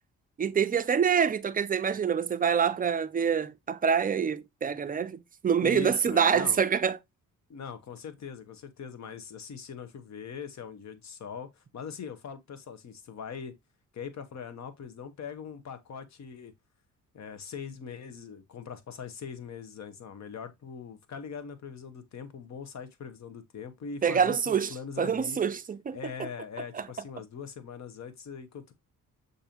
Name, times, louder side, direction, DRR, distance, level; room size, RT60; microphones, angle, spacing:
voice 1, 0.4-7.0 24.0-26.0 26.7-26.9, right 7 dB, 25° right, 0.4 m, -26 dB
voice 2, 5.6-6.6 7.5-13.5 13.9-16.5 17.1-25.4 25.9-28.7, left 6 dB, 55° left, 0.9 m, -41 dB
6.5 x 2.6 x 2.8 m
cardioid pair, 70°, 33 cm